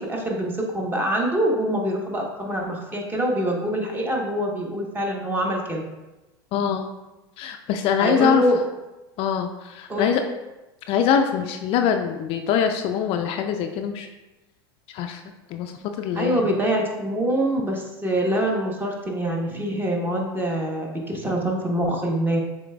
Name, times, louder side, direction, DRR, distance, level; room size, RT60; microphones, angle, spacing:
voice 1, 0.0-5.8 8.0-8.6 9.9-10.1 16.1-22.4, right 1 dB, 15° right, 0 dB, 1.0 m, -25 dB
voice 2, 6.5-6.9 7.4-8.4 9.2-10.2 10.9-14.1 14.9-15.2 15.5-15.7 16.0-16.4, left 8 dB, 50° left, 5 dB, 0.4 m, -23 dB
6.9 x 3.3 x 2.3 m, 1.1 s
hypercardioid pair, 100°, 13 cm